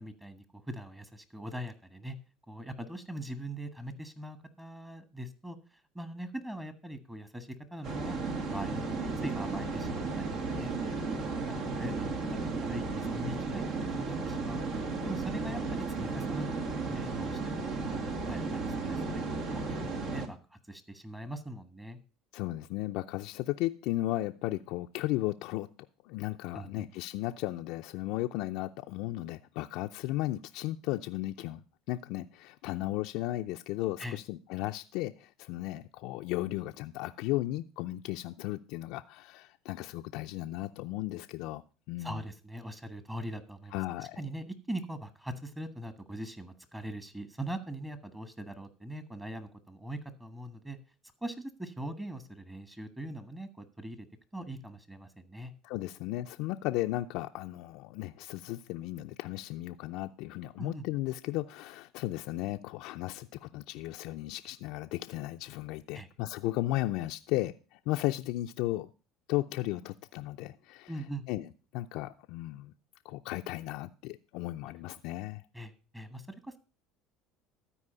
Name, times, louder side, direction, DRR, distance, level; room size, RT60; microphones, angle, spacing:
voice 1, 0.0-2.2 2.5-13.6 13.9-22.0 26.5-26.9 34.0-34.2 42.0-50.8 51.2-54.1 54.3-55.5 60.6-60.8 65.9-66.1 70.9-71.2 75.5-76.6, right 1 dB, 10° right, 12 dB, 1.4 m, -42 dB
sound 1, 7.8-20.3, right 3 dB, 65° right, 1.8 m, -34 dB
voice 2, 22.3-25.7 26.0-31.6 31.9-41.6 41.9-42.2 43.7-44.2 55.6-68.9 69.3-70.9 71.3-72.7 73.0-75.4, left 17 dB, 70° left, 5 dB, 0.5 m, -35 dB
13.0 x 4.7 x 6.7 m, 0.34 s
supercardioid pair, 90°, 0 cm